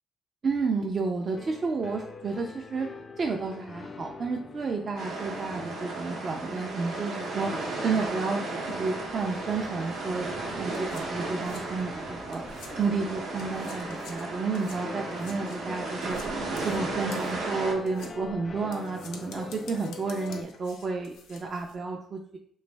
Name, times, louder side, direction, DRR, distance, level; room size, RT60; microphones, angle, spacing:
voice 1, 0.4-2.9 3.2-7.5 7.8-16.2 16.6-22.4, right 4 dB, 45° right, 1 dB, 0.4 m, -31 dB
sound 1, 1.3-20.4, left 4 dB, 35° left, 0.3 m, -43 dB
sound 2, 5.0-17.7, right 3 dB, 85° right, 0.7 m, -35 dB
sound 3, 10.2-13.0 13.3-21.8, left 4 dB, 90° left, 0.5 m, -50 dB
3.1 x 2.6 x 3.2 m, 0.65 s
cardioid pair, 90°, 0 cm